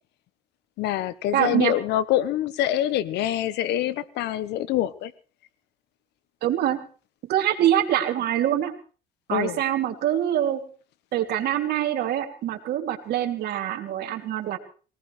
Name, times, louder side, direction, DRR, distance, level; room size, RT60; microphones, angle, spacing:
voice 1, 0.8-5.1 9.3-9.6, left 12 dB, 85° left, 15 dB, 1.2 m, -25 dB
voice 2, 1.3-1.8 6.4-6.8 7.2-8.7 9.3-10.6 11.1-14.6, right 11 dB, 70° right, 5 dB, 2.9 m, -24 dB
23.0 x 18.5 x 3.3 m, 0.38 s
cardioid pair, 110°, 17 cm